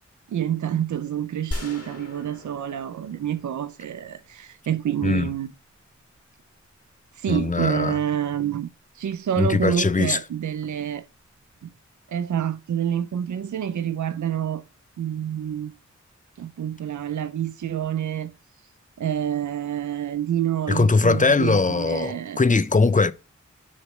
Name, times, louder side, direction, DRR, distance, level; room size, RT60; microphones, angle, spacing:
voice 1, 0.3-5.5 7.1-8.7 8.9-11.0 11.6-11.7 12.1-14.6 15.0-15.7 16.4-18.3 19.0-22.4, right 10 dB, 75° right, 0.5 m, -27 dB
sound 1, 1.5-4.4, left 1 dB, 50° left, 1.8 m, -37 dB
voice 2, 5.0-5.3 7.3-8.0 9.4-10.2 20.7-23.1, left 4 dB, 25° left, 0.5 m, -21 dB
6.6 x 3.1 x 5.9 m
wide cardioid pair, 50°, 30 cm